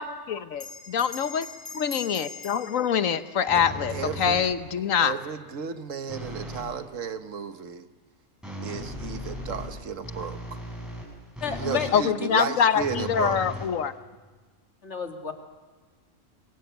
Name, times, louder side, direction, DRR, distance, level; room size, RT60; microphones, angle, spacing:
voice 1, 0.0-1.5 1.7-5.1 11.9-13.9, left 7 dB, 85° left, 11 dB, 1.4 m, -25 dB
Bell, 0.5-5.4, left 5 dB, 25° left, 2.7 m, -44 dB
sound 1, 3.5-4.7 6.1-6.8 8.4-12.0 12.8-14.3, left 1 dB, ahead, 7.2 m, -37 dB
voice 2, 3.9-4.4 5.0-7.9 8.6-10.4 11.6-13.4, right 6 dB, 75° right, 10 dB, 1.6 m, -33 dB
voice 3, 11.4-11.9 12.2-12.3 14.8-15.3, left 7 dB, 60° left, 4 dB, 2.7 m, -30 dB
26.0 x 22.0 x 8.2 m, 1.3 s
omnidirectional pair, 1.3 m